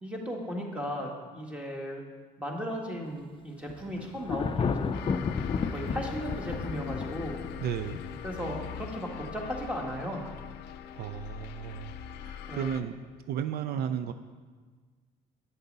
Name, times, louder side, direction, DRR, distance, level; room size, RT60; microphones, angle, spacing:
voice 1, 0.0-2.0 2.4-4.9 5.7-7.4 8.2-10.3 12.5-12.8, equal, 5° right, 0 dB, 1.6 m, -36 dB
Thunder, 3.7-9.1, left 5 dB, 30° left, 0.5 m, -33 dB
sound 1, 4.9-12.8, left 8 dB, 80° left, 0.5 m, -41 dB
voice 2, 7.6-8.0 10.9-13.0 13.3-14.1, right 9 dB, 70° right, 10 dB, 0.4 m, -34 dB
9.1 x 6.7 x 5.4 m, 1.5 s
cardioid pair, 110°, 17 cm